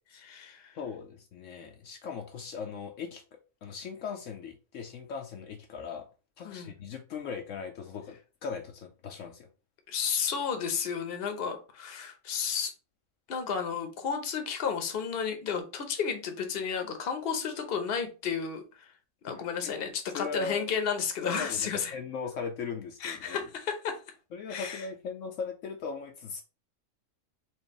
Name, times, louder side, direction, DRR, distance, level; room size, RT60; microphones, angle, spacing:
voice 1, 0.1-0.7 6.4-6.7 9.9-12.7 13.3-18.9 19.2-22.0 23.0-24.0 24.5-24.9, left 6 dB, 50° left, 1.0 m, -32 dB
voice 2, 0.7-3.2 3.6-6.1 6.4-9.5 19.6-20.7 21.2-23.4 24.3-26.4, left 5 dB, 75° left, 1.0 m, -39 dB
4.5 x 2.8 x 2.9 m
omnidirectional pair, 1.4 m